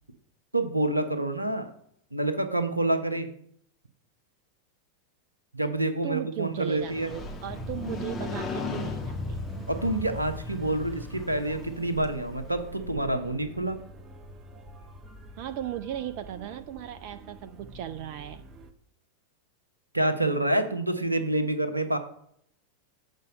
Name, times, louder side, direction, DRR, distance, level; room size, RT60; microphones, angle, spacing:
voice 1, 0.5-1.7 2.1-3.3 5.5-7.1 9.7-13.8 19.9-22.0, right 1 dB, 85° right, 8 dB, 0.9 m, -27 dB
voice 2, 6.0-9.4 15.4-18.4, right 11 dB, 45° right, 10 dB, 0.4 m, -36 dB
Motorcycle, 6.6-12.5, left 4 dB, 25° left, 1.3 m, -37 dB
sound 1, 7.1-18.7, right 1 dB, 25° right, 1.0 m, -45 dB
7.9 x 5.4 x 5.3 m, 0.69 s
figure-of-eight pair, 90°, 0 cm